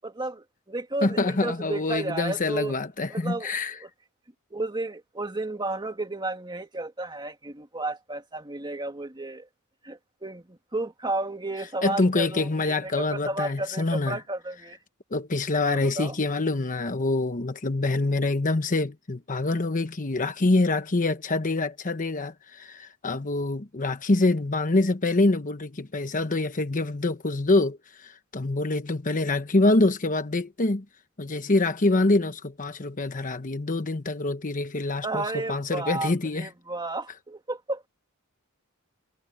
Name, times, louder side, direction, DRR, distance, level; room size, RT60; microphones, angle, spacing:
voice 1, 0.0-2.7 3.1-3.5 3.8-3.9 4.5-9.5 9.8-14.8 15.6-16.2 35.0-37.8, right 2 dB, 20° right, 2.4 m, -32 dB
voice 2, 1.0-3.8 11.8-14.2 15.1-30.8 31.2-36.5, left 2 dB, 35° left, 1.1 m, -25 dB
head